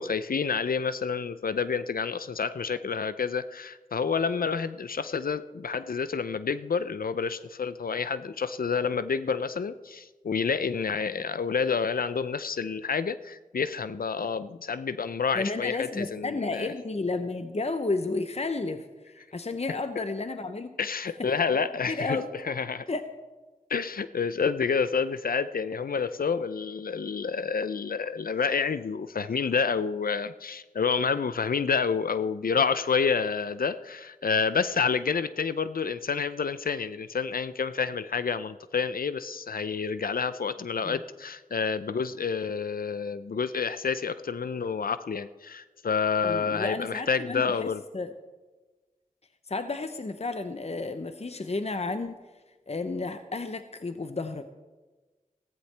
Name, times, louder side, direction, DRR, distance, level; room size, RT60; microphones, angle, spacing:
voice 1, 0.0-16.7 20.8-22.9 23.7-47.8, left 5 dB, 85° left, 13 dB, 0.5 m, -29 dB
voice 2, 15.3-18.8 19.1-20.7 21.9-22.3 22.9-23.0 40.8-41.0 46.2-48.1 49.5-52.2 52.7-54.5, left 3 dB, 45° left, 9 dB, 0.7 m, -32 dB
16.0 x 14.5 x 3.4 m, 1.2 s
wide cardioid pair, 45°, 15 cm